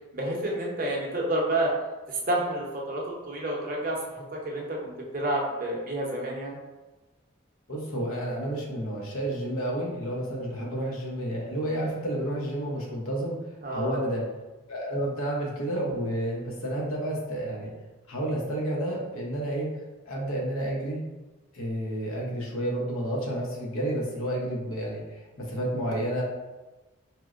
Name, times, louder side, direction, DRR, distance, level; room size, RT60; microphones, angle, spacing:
voice 1, 0.1-1.7 2.1-6.6 13.6-14.0, right 1 dB, 40° right, -2 dB, 0.6 m, -29 dB
voice 2, 7.7-13.4 13.7-14.2 14.7-17.7 18.1-19.7 20.1-21.0 21.5-26.2, right 1 dB, 90° left, -3 dB, 0.8 m, -30 dB
4.3 x 2.0 x 2.4 m, 1.1 s
head